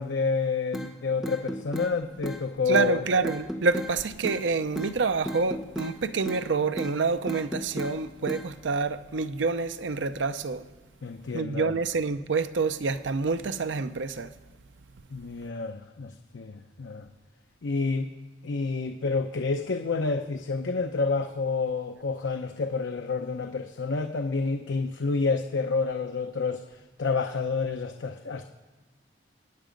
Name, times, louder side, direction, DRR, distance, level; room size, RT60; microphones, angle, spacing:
voice 1, 0.0-3.0 11.0-11.8 15.1-17.1 17.6-18.1 18.4-28.5, left 4 dB, 85° left, 0.6 m, -29 dB
sound 1, 0.7-0.9 1.2-1.9 2.2-2.4 2.7-2.9 3.2-3.9 4.2-4.4 4.8-4.9 5.3-6.0 6.3-6.5 6.8-7.0 7.3-7.9 8.3-8.5, equal, 5° right, 0.9 m, -34 dB
voice 2, 2.7-10.6 11.3-14.3, right 4 dB, 85° right, 0.6 m, -27 dB
22.5 x 9.2 x 5.2 m
head